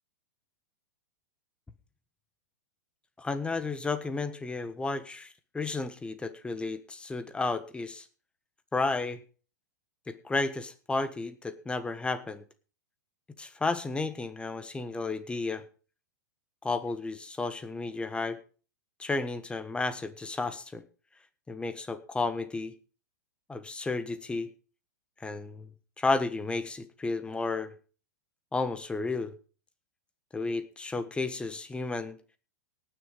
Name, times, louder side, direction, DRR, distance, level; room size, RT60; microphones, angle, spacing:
voice 1, 3.2-8.1 8.7-9.2 10.1-12.4 13.4-15.6 16.6-18.4 19.0-20.8 21.5-22.7 23.5-24.5 25.2-25.7 26.0-27.7 28.5-29.3 30.3-32.2, left 3 dB, 10° left, 12 dB, 1.4 m, -32 dB
18.0 x 6.9 x 5.2 m, 0.38 s
hypercardioid pair, 105°, 10 cm